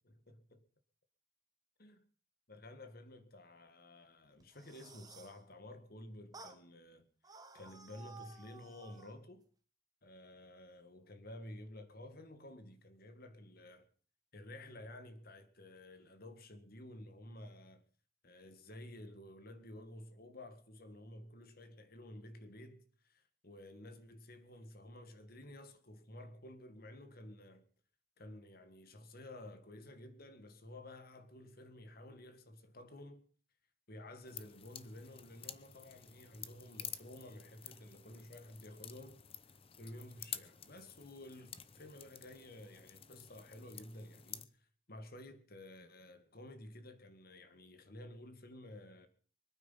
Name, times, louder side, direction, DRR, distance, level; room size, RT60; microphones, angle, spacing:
voice 1, 0.0-0.7 1.8-2.0 2.5-9.5 10.0-13.9 14.3-17.8 18.2-27.6 28.2-33.2 33.9-39.2 39.8-49.1, left 1 dB, 45° left, 1.8 m, -52 dB
sound 1, 4.4-5.4 6.3-6.6 7.2-9.2, right 3 dB, 20° right, 1.4 m, -55 dB
sound 2, 34.2-44.5, left 9 dB, 30° left, 0.7 m, -51 dB
24.0 x 9.2 x 5.7 m
head